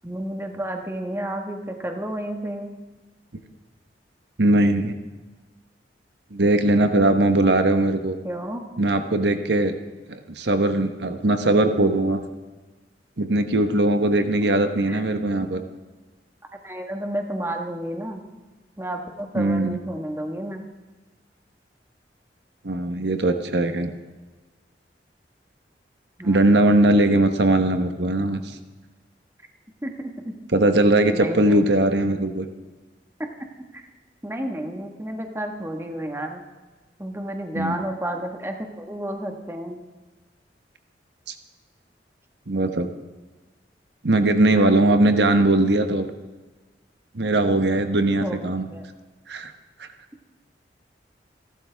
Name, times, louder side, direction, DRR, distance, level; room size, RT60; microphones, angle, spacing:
voice 1, 0.0-2.7 8.2-8.6 14.9-15.0 16.5-18.3 18.8-20.6 26.2-26.8 29.8-30.3 31.1-31.7 33.7-33.9 34.2-36.4 37.0-39.8 48.2-48.5 48.7-48.9, right 1 dB, 15° right, 3 dB, 1.4 m, -31 dB
voice 2, 4.4-4.9 6.3-8.2 8.8-9.7 10.1-12.2 13.2-15.6 19.4-19.8 22.6-23.9 26.2-28.4 30.5-32.5 37.5-37.8 41.3-41.4 42.5-42.9 44.0-46.1 47.1-48.6 49.3-49.5 49.8-49.9, right 1 dB, 75° right, 7 dB, 1.1 m, -20 dB
28.5 x 12.0 x 3.5 m, 1.3 s
head